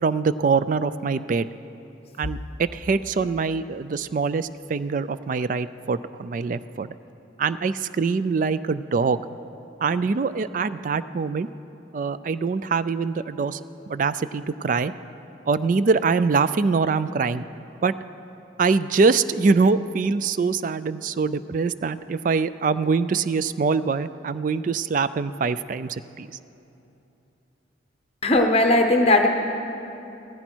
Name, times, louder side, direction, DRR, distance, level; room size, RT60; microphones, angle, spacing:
voice 1, 0.0-1.5 2.2-6.9 7.4-9.2 9.8-11.5 11.9-13.6 13.9-14.9 15.5-17.4 17.8-17.9 18.6-26.3, right 4 dB, 40° right, 14 dB, 0.3 m, -23 dB
voice 2, 28.2-29.3, left 2 dB, 30° left, 4 dB, 0.8 m, -18 dB
16.0 x 14.5 x 4.5 m, 2.9 s
head